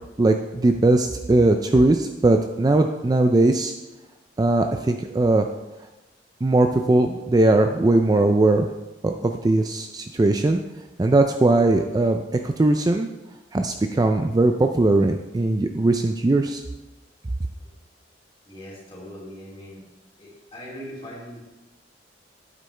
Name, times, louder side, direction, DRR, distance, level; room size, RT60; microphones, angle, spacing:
voice 1, 0.2-3.7 4.4-5.5 6.4-8.7 9.0-10.6 11.0-13.1 13.5-16.6, right 2 dB, 20° right, 5 dB, 0.3 m, -19 dB
voice 2, 18.4-19.8 20.2-21.4, equal, 30° left, -5 dB, 3.0 m, -40 dB
9.1 x 8.3 x 3.3 m, 1.0 s
head